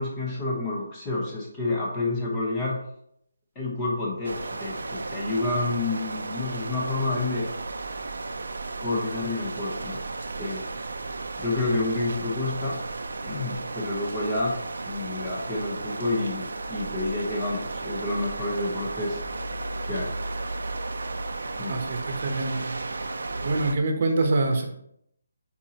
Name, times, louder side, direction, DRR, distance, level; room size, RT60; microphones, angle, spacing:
voice 1, 0.0-2.8 3.5-7.5 8.8-10.0 10.4-10.7 11.4-12.8 13.2-14.6 14.8-19.2 19.8-20.2 21.6-21.8, left 2 dB, 10° left, -4 dB, 1.0 m, -29 dB
sound 1, 4.2-23.8, right 3 dB, 80° right, 0.6 m, -34 dB
voice 2, 21.7-24.6, right 2 dB, 35° right, 4 dB, 1.0 m, -26 dB
8.8 x 4.2 x 3.0 m, 0.72 s
hypercardioid pair, 175°, 0 cm